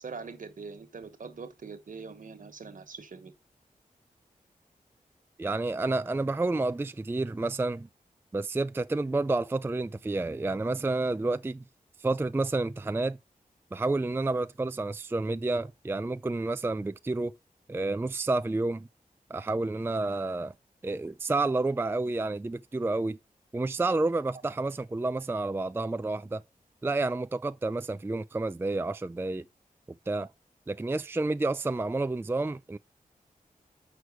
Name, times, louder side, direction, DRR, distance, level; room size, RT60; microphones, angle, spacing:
voice 1, 0.0-3.3, right 4 dB, 65° right, 1.3 m, -43 dB
voice 2, 5.4-7.9 8.3-11.6 12.0-13.2 13.7-17.3 17.7-18.9 19.3-20.5 20.8-23.2 23.5-26.4 26.8-29.4 30.1-30.3 30.7-32.8, right 2 dB, 15° right, 0.4 m, -30 dB
6.3 x 4.6 x 6.4 m
cardioid pair, 60°, 15 cm